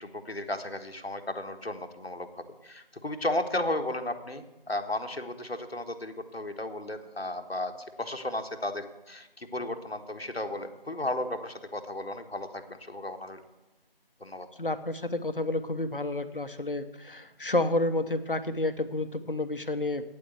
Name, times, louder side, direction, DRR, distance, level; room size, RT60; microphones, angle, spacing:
voice 1, 0.0-13.4 14.2-14.5, left 1 dB, 85° left, 6 dB, 1.3 m, -34 dB
voice 2, 14.6-20.0, left 2 dB, 60° left, 10 dB, 0.9 m, -30 dB
8.9 x 8.6 x 8.1 m, 1.0 s
figure-of-eight pair, 175°, 30 cm